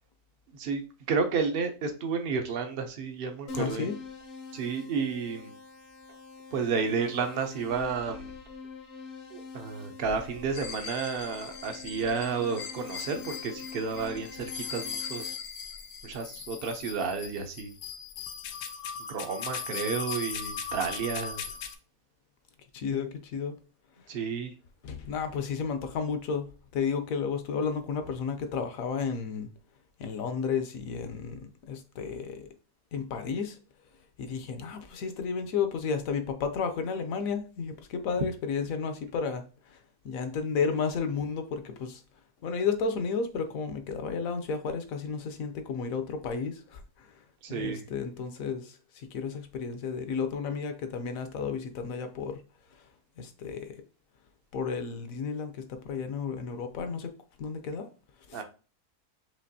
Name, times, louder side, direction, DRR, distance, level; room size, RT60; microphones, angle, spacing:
voice 1, 0.5-3.9 4.5-5.5 6.5-8.3 9.3-15.3 16.0-17.7 19.1-21.4 24.1-24.5 47.4-47.8 58.3-58.4, right 5 dB, 70° right, 0.5 m, -31 dB
voice 2, 3.5-3.9 22.7-23.6 24.8-29.5 30.0-32.5 32.9-33.6 34.2-39.8 40.0-42.0 42.4-47.1 47.5-52.4 53.2-53.8 54.5-57.1 57.4-57.9 58.3-58.4, left 5 dB, 65° left, 0.9 m, -32 dB
Keyboard (musical), 3.5-15.3, left 5 dB, 50° left, 0.5 m, -45 dB
sound 1, 10.5-21.7, left 6 dB, 90° left, 1.2 m, -39 dB
5.1 x 2.9 x 2.7 m
omnidirectional pair, 1.7 m